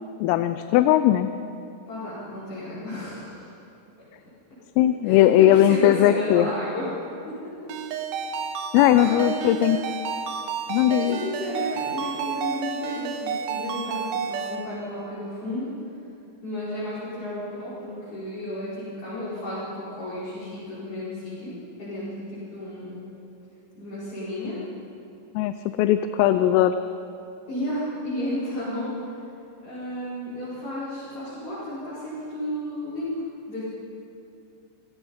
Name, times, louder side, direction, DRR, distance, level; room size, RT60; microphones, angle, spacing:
voice 1, 0.2-1.3 4.8-6.5 8.7-9.8 10.7-11.2 25.4-26.8, left 12 dB, 90° left, 11 dB, 3.3 m, -19 dB
voice 2, 1.9-3.5 5.0-6.9 7.3-7.7 8.9-9.8 10.9-15.7 16.4-23.1 23.8-24.6 27.5-28.9 29.6-33.2 33.5-33.7, left 1 dB, 30° left, -11 dB, 5.5 m, -33 dB
Ringtone, 7.7-14.6, right 6 dB, 75° right, 3.5 m, -30 dB
28.0 x 16.5 x 5.6 m, 2.8 s
omnidirectional pair, 5.8 m